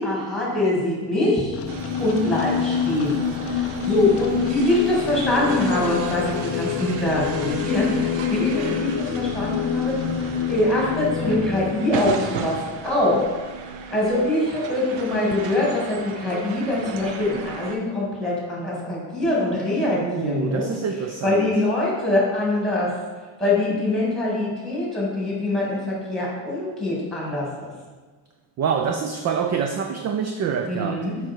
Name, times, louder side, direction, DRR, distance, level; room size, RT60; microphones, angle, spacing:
voice 1, 0.0-1.6 2.0-10.0 10.5-12.6 12.8-13.3 13.9-20.7 21.2-22.9 23.4-27.7 30.6-31.2, left 1 dB, ahead, -5 dB, 2.5 m, -23 dB
sound 1, 1.5-11.7, left 8 dB, 30° left, 0.4 m, -27 dB
sound 2, 1.7-17.8, right 5 dB, 65° right, 0.9 m, -35 dB
voice 2, 19.9-21.5 28.6-31.1, right 6 dB, 35° right, 5 dB, 0.4 m, -26 dB
7.3 x 5.3 x 4.6 m, 1.4 s
cardioid pair, 145°, 48 cm